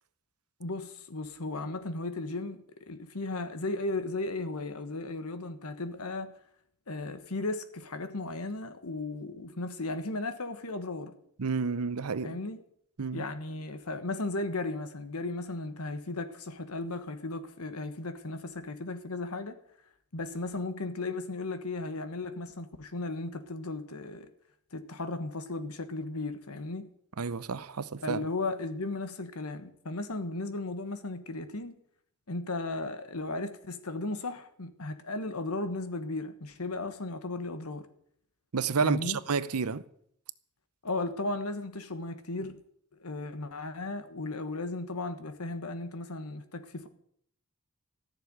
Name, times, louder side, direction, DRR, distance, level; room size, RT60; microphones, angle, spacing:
voice 1, 0.6-6.3 6.9-11.1 12.2-12.6 13.1-19.6 20.1-24.3 24.7-26.9 28.0-31.7 32.3-37.9 38.8-39.2 40.8-42.6 43.0-46.9, left 2 dB, 85° left, 1.4 m, -35 dB
voice 2, 11.4-12.4 13.0-13.2 27.2-28.2 38.5-39.8, right 5 dB, 80° right, 0.7 m, -30 dB
14.5 x 6.9 x 9.4 m
head